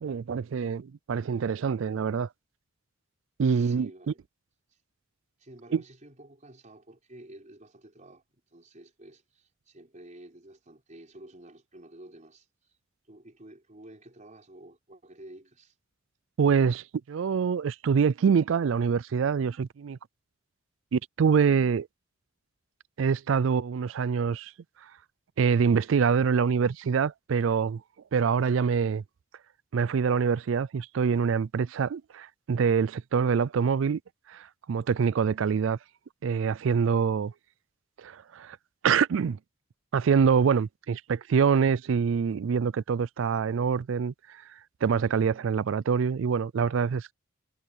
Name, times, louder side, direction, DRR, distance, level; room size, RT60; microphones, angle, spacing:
voice 1, 0.0-2.3 3.4-4.1 5.7-5.8 16.4-20.0 20.9-21.9 23.0-24.5 25.4-27.8 28.1-29.0 29.7-34.0 34.3-35.8 36.2-37.3 38.0-38.6 38.8-39.4 39.9-44.4 44.8-47.1, right 6 dB, 70° right, 0.4 m, -25 dB
voice 2, 3.4-4.2 5.4-12.8 13.0-15.7, right 1 dB, 40° right, 4.3 m, -51 dB
head